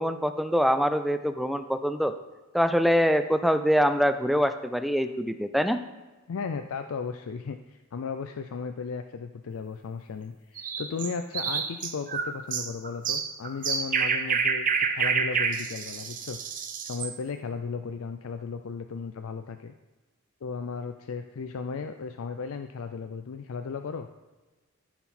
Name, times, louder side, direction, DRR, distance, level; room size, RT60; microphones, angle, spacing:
voice 1, 0.0-2.2 2.5-5.8, equal, ahead, 10 dB, 0.3 m, -24 dB
voice 2, 6.3-16.4 16.8-19.7 20.4-24.1, left 5 dB, 70° left, 8 dB, 0.4 m, -35 dB
sound 1, 10.6-17.1, right 6 dB, 40° right, 0.8 m, -28 dB
14.0 x 5.9 x 4.3 m, 1.2 s
head